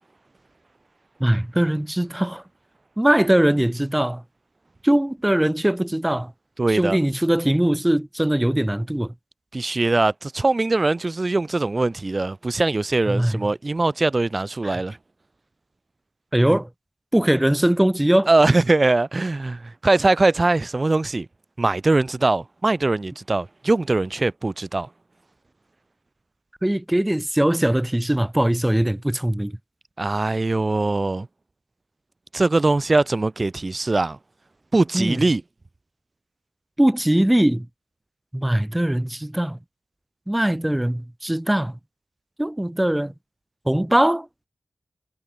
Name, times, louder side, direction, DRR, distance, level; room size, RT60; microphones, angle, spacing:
voice 1, 1.2-2.4 3.0-4.2 4.8-6.3 6.7-9.1 13.1-13.5 14.6-14.8 16.3-16.7 17.1-18.3 26.6-29.5 34.9-35.2 36.8-37.7 38.3-39.6 40.3-41.7 42.4-43.1 43.7-44.3, right 1 dB, 15° right, 0.9 m, -21 dB
voice 2, 6.6-7.0 9.5-14.9 18.3-21.3 21.6-24.9 30.0-31.3 32.3-34.2 34.7-35.4, right 2 dB, 45° right, 0.8 m, -21 dB
cardioid pair, 50°, 0 cm